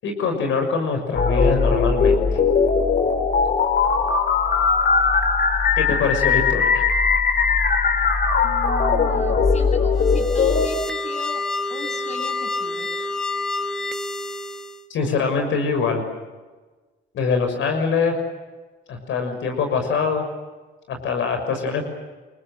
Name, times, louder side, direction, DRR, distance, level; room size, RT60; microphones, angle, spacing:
voice 1, 0.0-2.4 5.8-6.8 14.9-16.0 17.1-18.2 18.9-20.2 20.9-21.9, left 5 dB, 75° left, 5 dB, 6.4 m, -23 dB
sound 1, 1.1-10.7, left 5 dB, 50° left, 4.8 m, -19 dB
voice 2, 8.4-11.4 11.7-12.9, left 3 dB, 35° left, 6 dB, 8.0 m, -37 dB
sound 2, 10.0-14.8, left 2 dB, 5° left, 2.0 m, -28 dB
30.0 x 23.5 x 7.5 m, 1.3 s
cardioid pair, 90°, 20 cm